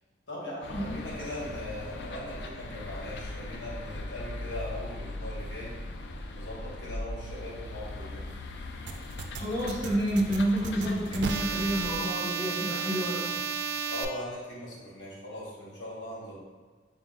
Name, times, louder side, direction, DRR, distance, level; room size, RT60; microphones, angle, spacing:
voice 1, 0.3-5.7 6.3-8.3 13.6-16.4, left 1 dB, 85° left, -7 dB, 1.4 m, -40 dB
sound 1, 0.6-12.0, left 2 dB, 70° left, 0.3 m, -39 dB
sound 2, 8.9-14.1, right 5 dB, 75° right, 0.3 m, -33 dB
voice 2, 9.4-13.4, right 1 dB, 25° left, -9 dB, 1.5 m, -29 dB
3.9 x 3.6 x 2.4 m, 1.4 s
head